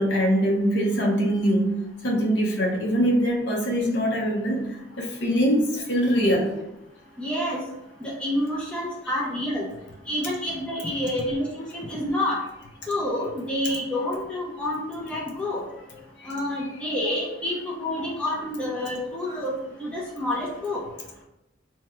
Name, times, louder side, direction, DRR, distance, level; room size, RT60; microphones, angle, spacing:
voice 1, 0.0-6.6 8.5-8.6 10.9-11.0 12.3-12.4 13.6-13.8 16.6-16.8 18.4-18.5, equal, 60° left, -1 dB, 0.9 m, -23 dB
voice 2, 7.2-7.6 8.0-9.7 10.1-12.4 12.9-15.6 16.3-20.8, left 1 dB, 5° left, -5 dB, 0.6 m, -28 dB
3.2 x 2.3 x 4.3 m, 0.91 s
head